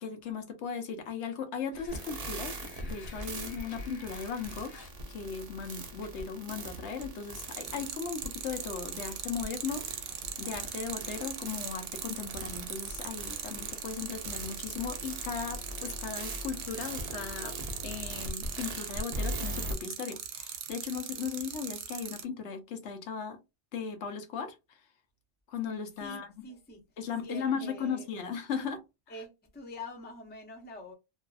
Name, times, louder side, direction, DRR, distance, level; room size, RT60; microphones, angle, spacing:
voice 1, 0.0-17.6 17.8-23.4 23.7-24.6 25.5-26.5 27.0-28.8, left 6 dB, 80° left, 0.9 m, -37 dB
sound 1, 1.7-18.3, left 1 dB, 60° left, 1.1 m, -50 dB
sound 2, 1.9-19.7, right 2 dB, 50° right, 0.5 m, -41 dB
sound 3, 6.6-7.0 7.4-22.2, right 9 dB, 75° right, 0.8 m, -39 dB
voice 2, 26.0-26.8 27.2-28.1 29.1-30.9, left 2 dB, 15° left, 0.4 m, -45 dB
2.6 x 2.3 x 2.2 m
omnidirectional pair, 1.2 m